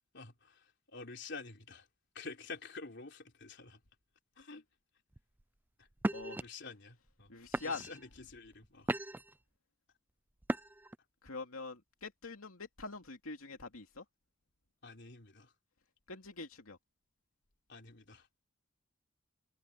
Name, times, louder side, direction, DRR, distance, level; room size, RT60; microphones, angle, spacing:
voice 1, 0.1-1.9 2.2-3.8 4.4-4.7 5.8-5.9 6.4-7.3 7.6-8.9 14.8-15.5 17.7-18.3, left 4 dB, 55° left, 3.5 m, -49 dB
sound 1, 5.1-5.4 6.0-6.4 7.1-7.2 7.5-8.0 8.5-9.3 10.4-11.0, right 1 dB, 10° right, 0.4 m, -36 dB
voice 2, 6.1-6.5 7.3-7.9 11.2-14.0 16.1-16.8, left 3 dB, 90° left, 2.7 m, -44 dB
head